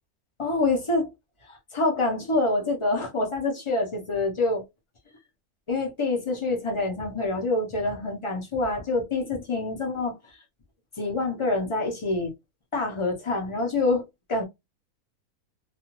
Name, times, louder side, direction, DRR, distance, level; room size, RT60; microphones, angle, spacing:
voice 1, 0.4-1.1 1.5-4.6 5.7-10.4 11.0-12.3 12.7-14.4, left 2 dB, 35° left, 0.5 m, -26 dB
2.4 x 2.3 x 3.0 m
omnidirectional pair, 1.6 m